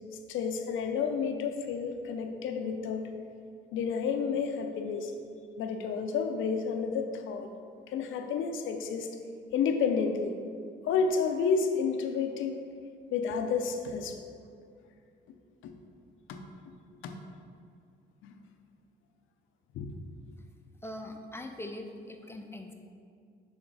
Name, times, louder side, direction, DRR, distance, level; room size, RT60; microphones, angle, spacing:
voice 1, 0.3-3.1 3.7-5.1 5.6-7.5 7.9-9.1 9.5-10.3 10.8-12.6 13.1-14.2 15.6-15.7 16.3-16.4 17.0-17.1 18.2-18.3 19.7-19.9, left 5 dB, 80° left, 6 dB, 0.6 m, -30 dB
voice 2, 20.8-22.7, left 1 dB, 10° left, 3 dB, 0.5 m, -41 dB
6.3 x 3.6 x 4.7 m, 2.3 s
cardioid pair, 90°, 20 cm